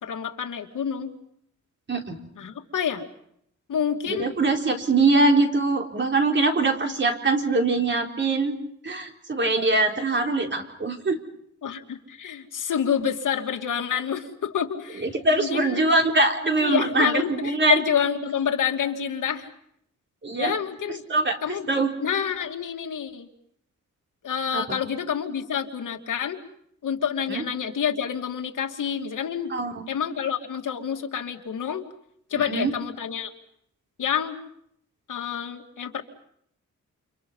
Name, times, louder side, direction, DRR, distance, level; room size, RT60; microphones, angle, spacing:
voice 1, 0.0-1.2 2.4-3.0 3.7-4.4 11.6-15.1 15.4-15.9 16.6-19.5 20.4-21.0 21.4-21.7 22.0-23.3 24.2-26.4 26.8-29.5 29.9-31.8 32.3-33.3 34.0-34.4 35.1-36.0, left 8 dB, 80° left, 4 dB, 2.8 m, -28 dB
voice 2, 1.9-2.2 4.1-8.6 8.8-11.2 15.0-17.8 20.2-20.5 21.1-21.9 24.5-24.8 27.3-27.4 29.5-29.9 32.5-32.7, right 2 dB, 35° right, 2 dB, 4.0 m, -23 dB
30.0 x 28.5 x 5.7 m, 0.72 s
wide cardioid pair, 135°, 31 cm